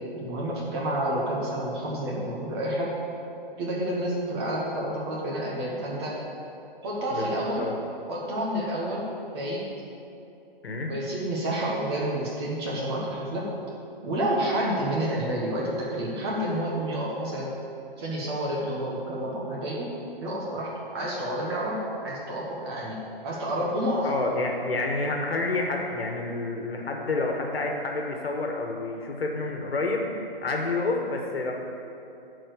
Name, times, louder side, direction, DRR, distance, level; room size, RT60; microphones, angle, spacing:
voice 1, 0.1-2.9 3.6-6.2 6.8-7.7 8.1-9.1 9.3-9.6 10.9-13.5 14.0-17.5 18.0-23.0 23.2-24.1, right 1 dB, 25° right, -5 dB, 1.4 m, -29 dB
voice 2, 7.1-7.7 10.6-10.9 24.0-30.1 30.4-31.5, left 3 dB, 90° left, 2 dB, 1.4 m, -29 dB
11.5 x 4.4 x 6.6 m, 2.7 s
hypercardioid pair, 160°, 29 cm